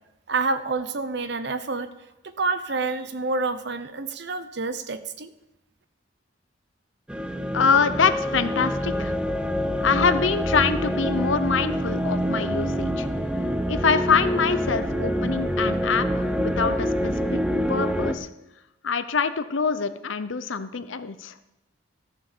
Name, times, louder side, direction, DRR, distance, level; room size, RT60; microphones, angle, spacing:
voice 1, 0.3-1.9 2.2-5.3, right 3 dB, 60° right, 11 dB, 0.8 m, -28 dB
sound 1, 7.1-18.2, equal, 5° right, 0.6 m, -26 dB
voice 2, 7.5-9.1 9.8-13.1 13.7-17.4 17.7-18.3 18.8-21.3, left 5 dB, 80° left, 12 dB, 0.8 m, -24 dB
14.0 x 6.4 x 6.8 m, 0.90 s
head